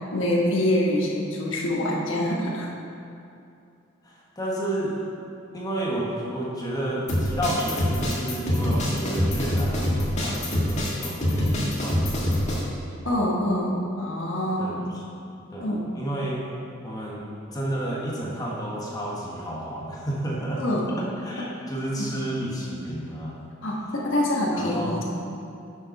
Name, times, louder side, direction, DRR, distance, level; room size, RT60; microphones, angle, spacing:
voice 1, 0.1-2.7 13.0-14.8 15.6-15.9 20.6-20.9 23.6-25.0, left 1 dB, 65° left, -3 dB, 1.2 m, -25 dB
voice 2, 4.0-4.9 5.5-12.4 14.6-15.0 15.5-16.4 16.8-20.6 21.0-23.5 24.5-24.9, right 1 dB, 20° left, -4 dB, 1.1 m, -31 dB
sound 1, 7.1-12.6, equal, 35° left, 1.7 m, -25 dB
7.1 x 6.7 x 5.3 m, 2.6 s
head